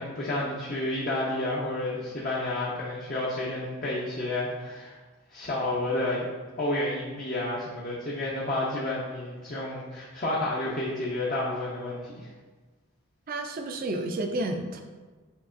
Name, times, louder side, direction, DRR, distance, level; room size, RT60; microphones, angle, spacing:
voice 1, 0.0-4.9 5.3-6.3 6.6-12.3, left 1 dB, 40° left, -6 dB, 0.6 m, -30 dB
voice 2, 13.3-14.8, right 2 dB, 40° right, 5 dB, 0.4 m, -31 dB
6.4 x 2.8 x 2.5 m, 1.3 s
head